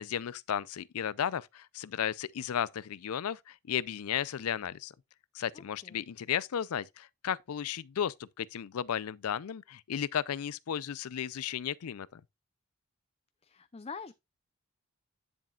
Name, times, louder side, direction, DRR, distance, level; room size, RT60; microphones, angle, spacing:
voice 1, 0.0-4.9 5.3-12.2, left 9 dB, 85° left, 0.4 m, -34 dB
voice 2, 5.5-6.0 13.4-14.1, left 5 dB, 30° left, 0.5 m, -45 dB
10.0 x 7.3 x 2.3 m
head